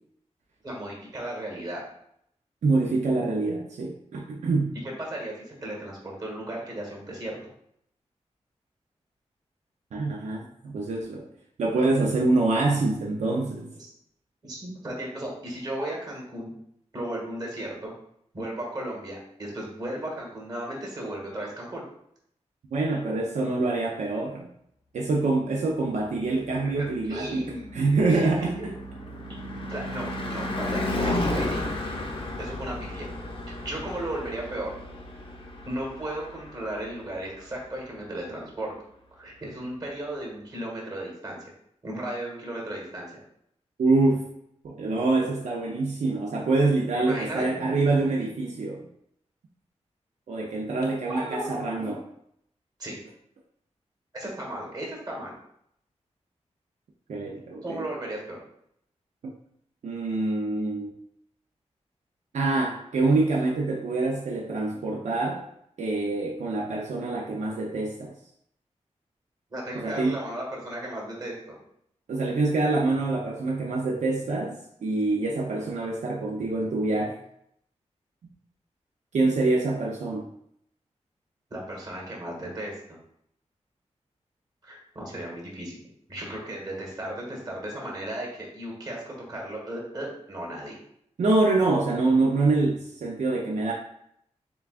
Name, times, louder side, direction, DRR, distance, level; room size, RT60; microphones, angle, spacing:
voice 1, 0.6-1.8 5.1-7.4 13.8-13.9 14.4-16.5 16.9-17.9 18.3-21.8 26.6-27.6 28.0-28.3 28.6-28.7 29.7-31.6 32.4-33.1 33.5-34.7 35.7-38.7 39.1-41.4 41.8-43.1 46.9-47.4 51.1-52.0 52.8-53.0 54.1-55.3 57.6-58.4 69.5-71.6 81.5-83.0 84.6-85.8 86.1-90.8, right 1 dB, 35° right, -2 dB, 1.5 m, -35 dB
voice 2, 2.6-4.7 9.9-11.2 11.6-13.7 22.7-24.5 24.9-28.5 43.8-44.2 44.6-48.8 50.3-52.0 57.1-57.8 59.8-60.9 62.3-65.4 65.8-68.1 69.7-70.2 72.1-77.2 79.1-80.3 91.2-93.7, right 3 dB, 85° right, -1 dB, 0.6 m, -25 dB
Car passing by / Truck / Engine, 26.9-37.2, left 1 dB, 50° left, 0.6 m, -33 dB
6.9 x 2.3 x 2.4 m, 0.73 s
wide cardioid pair, 135°, 12 cm